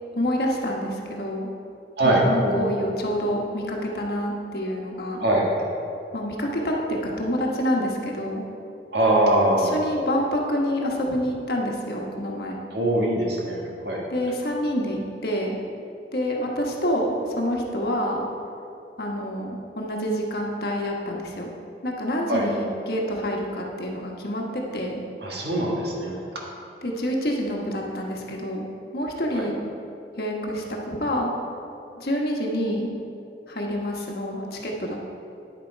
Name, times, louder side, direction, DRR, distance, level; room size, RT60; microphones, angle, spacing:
voice 1, 0.1-1.5 2.0-5.3 6.1-8.5 9.5-12.6 14.1-15.6 16.1-18.3 19.0-21.5 21.8-25.0 26.8-28.6 28.9-29.6 30.2-31.3 32.0-32.9 33.5-35.0, equal, 60° left, 0 dB, 1.2 m, -27 dB
voice 2, 2.0-2.6 5.2-5.5 8.9-9.8 12.7-14.0 22.3-22.5 25.2-26.1 29.3-29.5, right 1 dB, 70° right, -2 dB, 1.7 m, -22 dB
9.9 x 7.2 x 4.5 m, 2.7 s
head